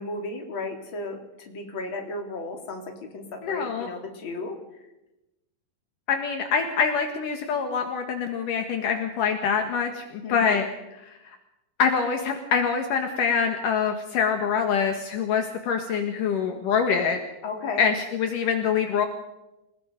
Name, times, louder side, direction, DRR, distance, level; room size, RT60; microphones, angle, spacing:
voice 1, 0.0-4.6 10.2-10.7 17.4-17.9, left 3 dB, 35° left, 3 dB, 3.5 m, -34 dB
voice 2, 3.4-3.9 6.1-10.7 10.9-11.2 11.8-17.2 17.8-19.1, left 6 dB, 70° left, 5 dB, 3.1 m, -25 dB
28.5 x 19.0 x 5.2 m, 0.96 s
omnidirectional pair, 4.1 m